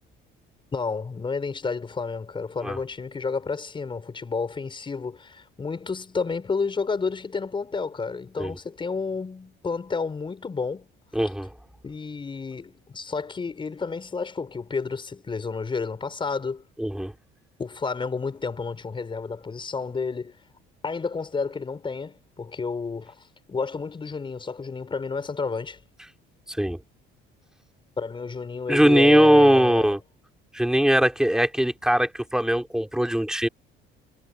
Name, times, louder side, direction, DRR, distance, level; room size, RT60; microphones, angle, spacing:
voice 1, 0.7-10.9 11.8-16.6 17.6-20.4 20.8-25.8 28.0-29.9, left 4 dB, 25° left, 5.6 m, -31 dB
voice 2, 11.1-11.5 16.8-17.1 26.5-26.8 28.7-30.0 30.5-33.5, right 1 dB, 5° right, 2.7 m, -20 dB
cardioid pair, 135°, 21 cm